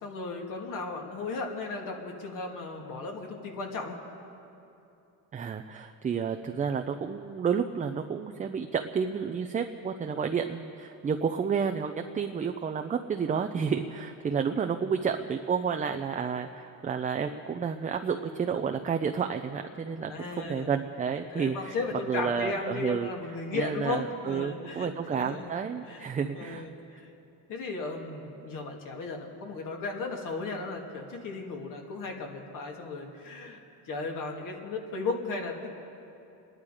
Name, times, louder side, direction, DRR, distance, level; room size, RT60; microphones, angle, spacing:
voice 1, 0.0-4.0 20.1-20.7 21.3-25.5 25.8-26.1 26.3-27.1 27.5-35.7, left 3 dB, 55° left, 1 dB, 2.4 m, -35 dB
voice 2, 5.3-20.1 20.4-23.1 23.5-26.7, right 6 dB, 20° right, 5 dB, 0.5 m, -30 dB
27.5 x 10.5 x 4.9 m, 2.8 s
cardioid pair, 120°, 37 cm